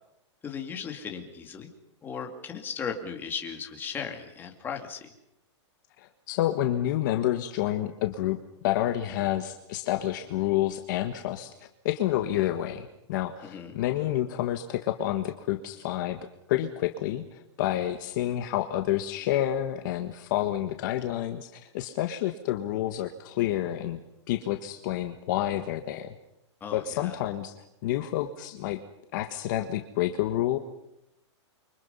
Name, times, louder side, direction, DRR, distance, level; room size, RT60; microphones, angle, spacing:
voice 1, 0.4-1.7 2.0-5.1 13.4-13.8 26.6-27.2, left 6 dB, 15° left, 3 dB, 2.5 m, -36 dB
voice 2, 6.0-8.4 8.6-11.5 11.8-16.2 16.5-24.0 24.3-26.1 26.7-27.5 27.8-28.8 29.1-30.6, left 13 dB, 40° left, 6 dB, 1.5 m, -29 dB
29.0 x 24.5 x 5.6 m, 0.83 s
hypercardioid pair, 160°, 15 cm